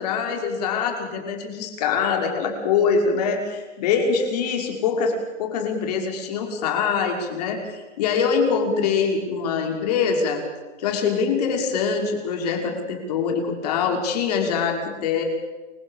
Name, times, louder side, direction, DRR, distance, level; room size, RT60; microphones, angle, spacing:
voice 1, 0.0-10.4 10.8-15.2, left 5 dB, 30° left, 3 dB, 5.9 m, -24 dB
29.0 x 25.0 x 7.5 m, 1.2 s
hypercardioid pair, 170°, 37 cm